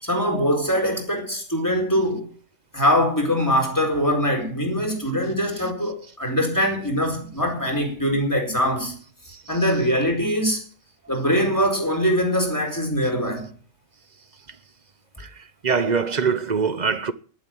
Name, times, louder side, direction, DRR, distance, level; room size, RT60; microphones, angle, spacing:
voice 1, 0.0-2.3 2.7-8.9 9.5-10.6 11.1-13.5, equal, 15° left, 4.5 m, -22 dB
voice 2, 15.6-17.1, right 5 dB, 40° right, 0.8 m, -23 dB
12.0 x 11.5 x 7.6 m
omnidirectional pair, 1.3 m